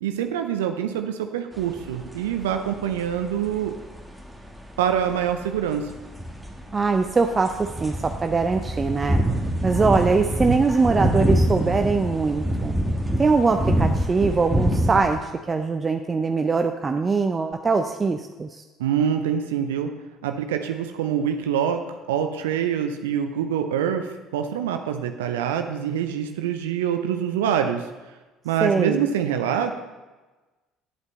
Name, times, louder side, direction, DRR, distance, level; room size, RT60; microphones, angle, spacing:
voice 1, 0.0-3.8 4.8-5.9 10.4-10.6 18.8-19.9 20.2-27.8 28.4-29.8, right 9 dB, 75° right, 6 dB, 0.5 m, -25 dB
sound 1, 1.5-15.2, equal, 5° right, 1.4 m, -26 dB
voice 2, 6.7-9.2 9.6-12.7 13.2-18.6 28.6-29.1, right 4 dB, 25° right, 6 dB, 0.5 m, -22 dB
9.8 x 8.0 x 4.0 m, 1.2 s
figure-of-eight pair, 55°, 0 cm